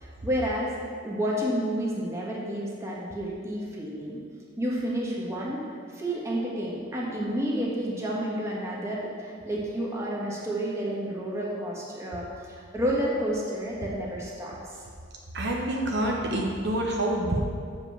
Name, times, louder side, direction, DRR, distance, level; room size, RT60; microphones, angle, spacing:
voice 1, 0.0-0.7 1.0-4.2 4.6-5.6 5.9-12.3 12.6-14.8, equal, 15° right, -5 dB, 1.5 m, -30 dB
voice 2, 15.3-17.5, right 1 dB, 60° right, -1 dB, 0.9 m, -27 dB
7.0 x 5.3 x 7.3 m, 2.1 s
head